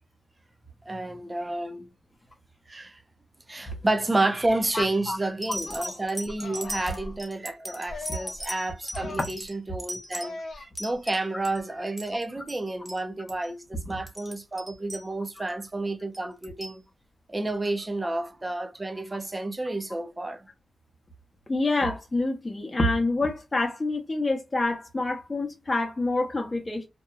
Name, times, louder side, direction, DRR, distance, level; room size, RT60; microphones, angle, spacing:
voice 1, 0.9-1.9 2.7-3.0 3.5-16.8 17.3-20.5, right 2 dB, 20° right, 0.5 m, -30 dB
voice 2, 4.7-5.2 9.0-9.2 13.9-14.0 15.4-15.5 21.5-26.9, left 2 dB, 25° left, 0.7 m, -27 dB
sound 1, 4.8-4.9 5.4-11.6 11.9-12.6 12.9-13.0 13.3-13.5 13.9-15.5 16.1-16.8 17.7-17.8, equal, 5° left, 0.9 m, -38 dB
sound 2, 5.5-6.0 6.4-7.2 7.9-8.4 8.8-9.3 10.2-10.7, left 3 dB, 70° left, 0.5 m, -40 dB
2.8 x 2.2 x 2.3 m
wide cardioid pair, 115°, 0 cm